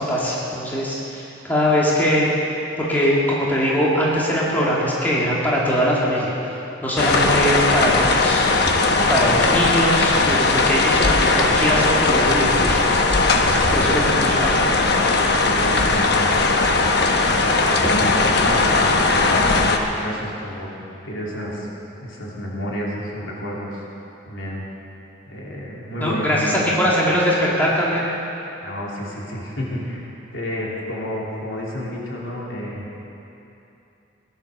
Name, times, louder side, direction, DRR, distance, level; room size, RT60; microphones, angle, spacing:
voice 1, 0.0-2.3 2.8-6.3 6.8-8.4 9.1-12.8 13.4-14.7 26.0-28.1, equal, 10° left, -6 dB, 2.3 m, -21 dB
sound 1, 7.0-19.8, left 3 dB, 55° left, 1.0 m, -18 dB
voice 2, 9.0-9.4 10.1-10.4 13.8-14.0 15.3-16.9 17.3-18.1 18.4-20.7 21.0-21.7 22.0-23.8 24.3-24.6 25.3-26.7 28.6-30.0 30.3-32.9, equal, 75° left, -4 dB, 3.2 m, -30 dB
18.0 x 11.0 x 6.7 m, 2.9 s
head